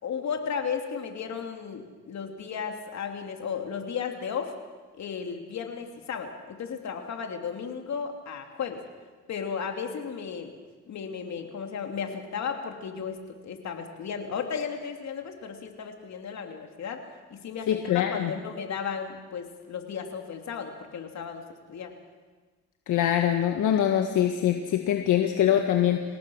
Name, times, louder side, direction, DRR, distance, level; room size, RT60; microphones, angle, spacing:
voice 1, 0.0-4.5 5.0-8.8 9.3-10.5 10.9-13.2 13.4-17.0 17.3-17.7 17.9-21.4 21.7-21.9, left 6 dB, 65° left, 4 dB, 3.1 m, -34 dB
voice 2, 17.7-18.3 22.9-26.0, left 10 dB, 80° left, 5 dB, 1.6 m, -23 dB
27.5 x 18.0 x 6.5 m, 1.4 s
cardioid pair, 90°, 30 cm